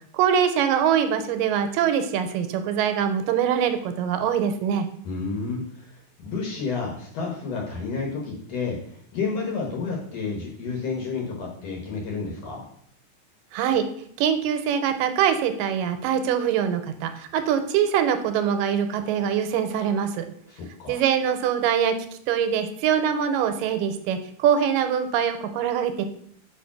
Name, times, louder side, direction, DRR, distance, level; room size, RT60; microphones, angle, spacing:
voice 1, 0.1-4.9 13.5-13.9 14.2-20.3 20.9-21.9 22.3-26.0, right 8 dB, 85° right, 9 dB, 2.2 m, -23 dB
voice 2, 5.0-5.9 6.2-8.8 9.1-12.7 20.5-21.0, left 4 dB, 65° left, 0 dB, 1.8 m, -30 dB
4.9 x 4.5 x 5.7 m, 0.65 s
omnidirectional pair, 3.9 m